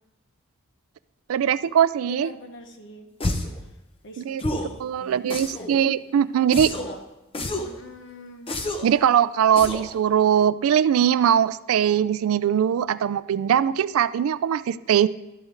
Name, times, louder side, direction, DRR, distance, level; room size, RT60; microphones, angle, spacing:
voice 1, 1.3-2.3 4.3-4.4 4.8-6.7 8.8-15.1, right 9 dB, 75° right, 17 dB, 0.3 m, -21 dB
voice 2, 2.1-3.1 3.6-3.8 4.0-5.8 6.7-7.0 7.5-8.5, left 2 dB, 55° left, 5 dB, 1.1 m, -44 dB
sound 1, 3.2-3.6 4.4-4.8 5.3-5.8 6.5-7.0 7.3-7.8 8.5-9.0 9.6-9.9, left 1 dB, 25° left, 0.7 m, -29 dB
11.5 x 8.0 x 3.8 m, 0.99 s
head